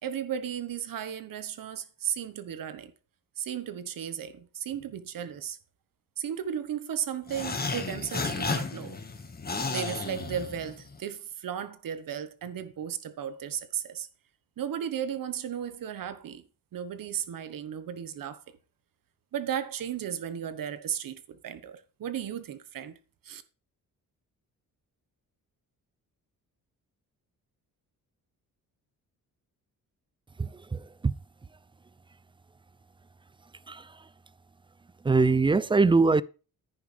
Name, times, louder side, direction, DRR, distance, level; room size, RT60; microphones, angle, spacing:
voice 1, 0.0-2.9 3.4-5.6 6.2-9.0 9.7-14.1 14.6-16.4 16.7-18.4 19.3-23.0 23.2-23.4, right 9 dB, 70° right, 1.4 m, -35 dB
sound 1, 7.3-11.0, left 4 dB, 25° left, 1.6 m, -33 dB
voice 2, 30.4-31.1 33.7-33.8 35.0-36.2, right 3 dB, 15° right, 0.4 m, -23 dB
10.5 x 9.9 x 3.4 m
cardioid pair, 115°, 35 cm